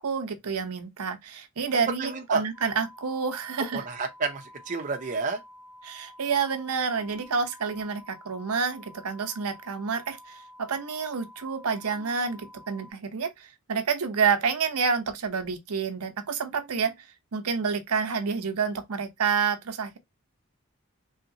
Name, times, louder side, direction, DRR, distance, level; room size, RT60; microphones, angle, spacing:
voice 1, 0.0-3.8 5.8-17.1 17.3-20.0, right 5 dB, 85° right, 0.7 m, -29 dB
voice 2, 2.0-2.4 3.7-5.4, right 4 dB, 35° right, 0.5 m, -30 dB
sound 1, 2.5-12.9, left 1 dB, 65° left, 1.1 m, -50 dB
3.1 x 2.9 x 2.6 m
head